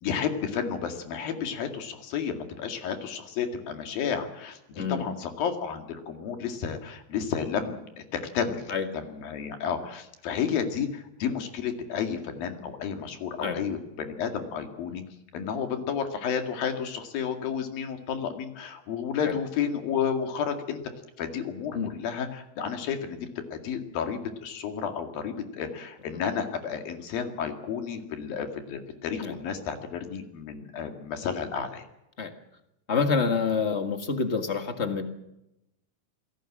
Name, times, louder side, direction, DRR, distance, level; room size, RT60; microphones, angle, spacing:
voice 1, 0.0-7.8 8.1-15.0 15.3-20.8 21.2-31.8, left 7 dB, 70° left, 6 dB, 3.9 m, -31 dB
voice 2, 32.9-35.0, left 5 dB, 40° left, 7 dB, 0.9 m, -27 dB
27.0 x 18.0 x 7.6 m, 0.88 s
omnidirectional pair, 4.3 m